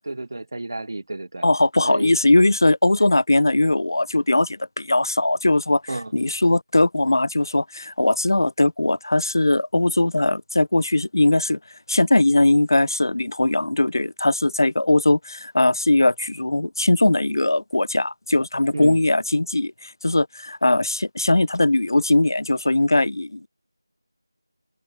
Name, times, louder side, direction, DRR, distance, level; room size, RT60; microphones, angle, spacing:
voice 1, 0.1-1.5 1.8-2.2 5.9-6.1 18.7-19.1, right 2 dB, 50° right, 0.7 m, -31 dB
voice 2, 1.4-5.8 6.1-11.6 11.9-23.5, left 2 dB, 60° left, 0.6 m, -20 dB
open air
figure-of-eight pair, 170°, 2 cm